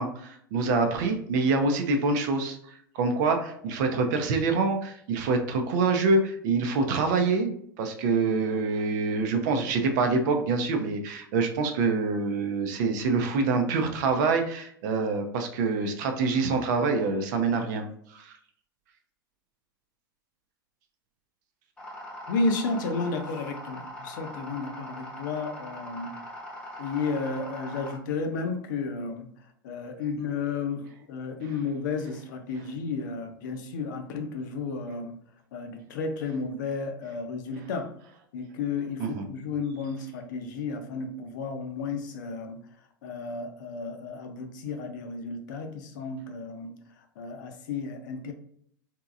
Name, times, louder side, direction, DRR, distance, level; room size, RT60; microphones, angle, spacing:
voice 1, 0.0-7.5 7.8-18.3 39.0-39.3, right 4 dB, 55° right, 5 dB, 0.6 m, -26 dB
sound 1, 21.8-28.0, left 1 dB, 10° left, 0.9 m, -41 dB
voice 2, 22.3-26.2 26.8-29.3 29.6-35.2 35.5-37.9 38.3-42.6 43.0-46.8 47.2-48.3, left 4 dB, 60° left, 5 dB, 0.6 m, -32 dB
3.6 x 2.8 x 2.4 m, 0.66 s
hypercardioid pair, 90°, 11 cm